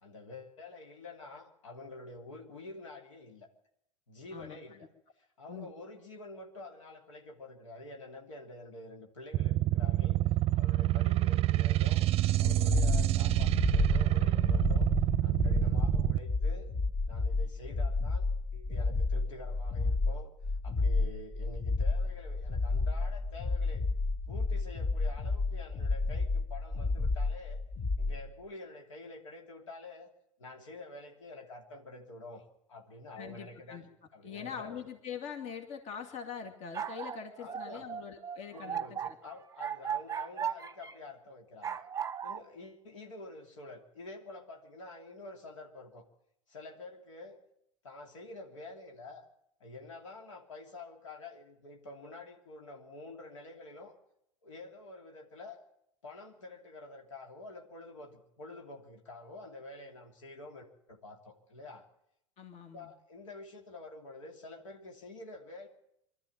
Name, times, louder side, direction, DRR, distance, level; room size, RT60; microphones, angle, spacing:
voice 1, 0.0-3.5 4.1-4.9 5.2-12.0 12.4-14.9 15.2-16.7 17.1-18.3 18.5-20.3 20.6-23.8 24.3-27.6 28.0-30.1 30.4-32.4 32.7-34.8 37.4-37.9 38.5-41.8 42.2-46.0 46.5-47.4 47.8-49.3 49.6-53.9 54.4-55.6 56.0-61.9 62.7-65.7, left 2 dB, 80° left, 2 dB, 3.0 m, -48 dB
sound 1, 9.3-16.2, right 16 dB, 40° right, 0.7 m, -27 dB
sound 2, 12.4-28.3, left 3 dB, 25° left, 1.2 m, -31 dB
voice 2, 33.2-33.9 34.2-39.2 62.4-62.9, left 7 dB, 45° left, 5 dB, 2.5 m, -43 dB
sound 3, 36.4-40.9 41.6-42.4, right 8 dB, 20° right, 1.0 m, -37 dB
23.0 x 13.0 x 8.9 m, 0.80 s
hypercardioid pair, 90°, 16 cm